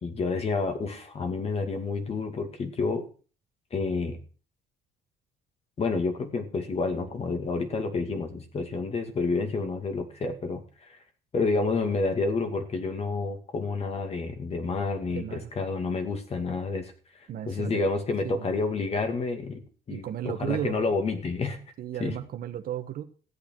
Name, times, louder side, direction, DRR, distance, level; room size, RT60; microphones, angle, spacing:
voice 1, 0.0-3.1 3.7-4.2 5.8-11.0 11.3-16.9 17.5-19.6 19.9-21.6 22.0-22.2, left 4 dB, 35° left, 6 dB, 2.3 m, -29 dB
voice 2, 15.1-15.5 17.3-17.8 18.2-18.5 19.9-20.8 21.8-23.0, right 11 dB, 60° right, 9 dB, 1.3 m, -34 dB
14.0 x 8.5 x 4.7 m, 0.39 s
cardioid pair, 110°, 17 cm